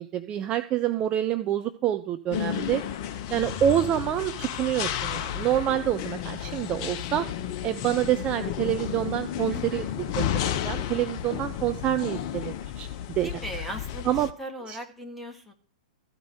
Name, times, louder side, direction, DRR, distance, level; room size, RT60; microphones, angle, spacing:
voice 1, 0.0-7.3 7.6-9.9 10.2-12.9 13.2-13.3 14.0-14.3 14.7-14.8, right 11 dB, 25° right, 9 dB, 0.6 m, -27 dB
sound 1, 2.3-14.3, left 10 dB, 40° left, 0.7 m, -32 dB
voice 2, 9.5-10.0 13.2-15.5, equal, ahead, 2 dB, 1.9 m, -39 dB
14.0 x 5.2 x 9.1 m, 0.43 s
figure-of-eight pair, 110°, 4 cm